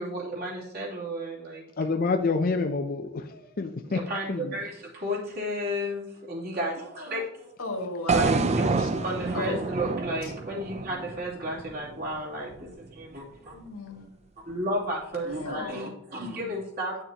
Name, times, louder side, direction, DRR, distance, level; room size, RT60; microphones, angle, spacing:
voice 1, 0.0-1.6 3.8-7.5 8.1-8.6 9.0-13.6 14.4-17.0, equal, 45° right, -5 dB, 3.1 m, -33 dB
voice 2, 1.8-4.0 4.3-4.5, left 4 dB, 40° left, 6 dB, 0.5 m, -28 dB
voice 3, 7.6-9.7 10.2-10.3 13.5-14.1 15.2-15.9, left 2 dB, 75° left, 1 dB, 1.8 m, -35 dB
sound 1, 8.1-12.2, right 3 dB, 30° right, 0.4 m, -28 dB
10.5 x 6.7 x 2.9 m, 0.81 s
head